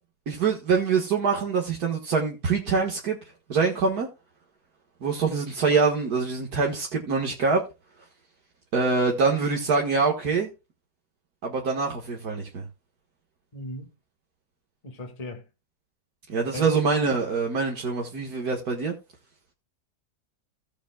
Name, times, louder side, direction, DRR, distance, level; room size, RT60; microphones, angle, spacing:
voice 1, 0.3-3.2 3.5-4.1 5.0-7.6 8.7-10.5 11.4-12.6 16.3-18.9, right 4 dB, 75° right, 2.1 m, -24 dB
voice 2, 13.5-13.9 14.8-15.5 16.4-16.7, left 1 dB, 25° left, 1.7 m, -37 dB
16.5 x 8.2 x 2.3 m
omnidirectional pair, 1.7 m